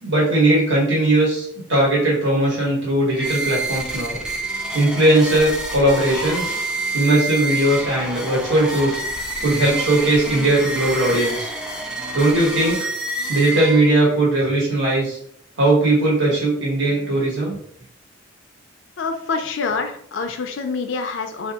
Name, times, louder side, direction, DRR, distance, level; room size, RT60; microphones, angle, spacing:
voice 1, 0.0-4.2 4.7-6.5 6.9-9.0 9.4-11.5 12.1-12.8 13.3-15.2 15.6-17.5, right 1 dB, 70° right, -5 dB, 1.4 m, -18 dB
sound 1, 3.1-14.2, right 2 dB, 5° right, 0.3 m, -28 dB
voice 2, 19.0-21.5, left 4 dB, 70° left, 6 dB, 0.4 m, -26 dB
2.7 x 2.3 x 3.5 m, 0.65 s
head